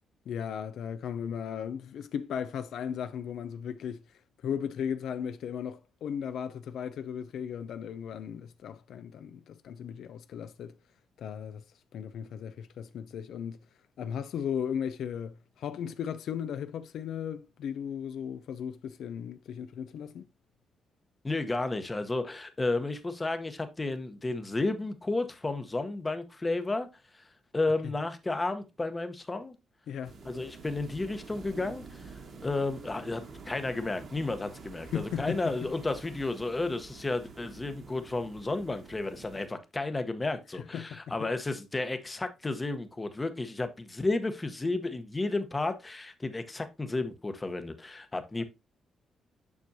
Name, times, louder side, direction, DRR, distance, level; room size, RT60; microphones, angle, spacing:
voice 1, 0.3-10.8 11.2-11.6 11.9-13.6 14.0-20.3 29.9-30.2 34.9-35.7 40.5-41.3 48.4-48.5, left 8 dB, 70° left, 0.4 m, -36 dB
voice 2, 21.2-26.9 27.1-27.2 27.5-29.5 30.2-48.4, left 2 dB, 20° left, 0.9 m, -32 dB
sound 1, 30.0-39.5, right 4 dB, 50° right, 1.4 m, -48 dB
7.1 x 6.1 x 2.7 m
cardioid pair, 120°, 0 cm